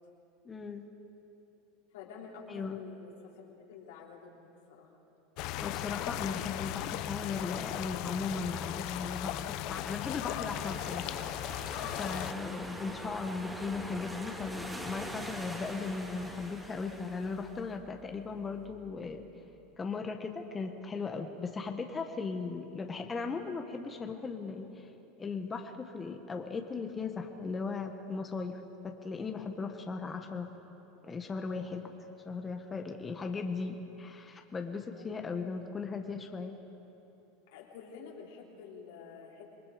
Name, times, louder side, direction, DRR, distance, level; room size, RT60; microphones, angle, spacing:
voice 1, 0.4-0.9 2.5-2.8 5.6-11.3 12.0-19.3 19.8-24.9 25.2-30.5 31.0-31.9 32.2-36.6, left 4 dB, 20° left, 4 dB, 1.5 m, -37 dB
voice 2, 1.9-4.9 34.9-35.3 37.5-39.5, left 6 dB, 75° left, -1 dB, 3.7 m, -49 dB
sound 1, 5.4-12.3, left 13 dB, 60° left, 0.8 m, -37 dB
sound 2, 10.5-18.6, equal, 5° right, 2.9 m, -44 dB
27.0 x 20.5 x 5.2 m, 3.0 s
hypercardioid pair, 105°, 0 cm